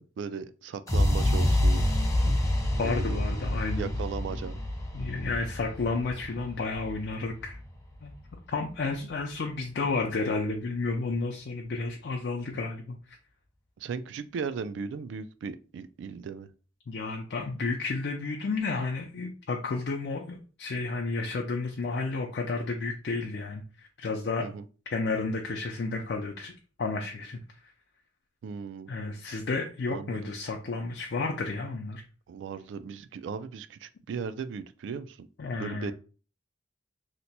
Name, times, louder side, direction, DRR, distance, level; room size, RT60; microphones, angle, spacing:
voice 1, 0.0-1.9 2.7-3.2 3.7-4.6 13.8-16.5 24.4-24.6 28.4-28.9 29.9-30.3 32.3-35.3 35.5-35.9, right 6 dB, 90° right, 12 dB, 0.3 m, -37 dB
sound 1, 0.9-8.8, left 1 dB, 20° left, 0.6 m, -28 dB
voice 2, 2.8-3.9 4.9-7.6 8.0-8.1 8.5-13.0 16.9-24.5 24.9-26.5 26.8-27.4 28.9-32.0 35.4-35.9, left 3 dB, 65° left, 1 dB, 0.4 m, -31 dB
2.8 x 2.2 x 4.0 m, 0.37 s
head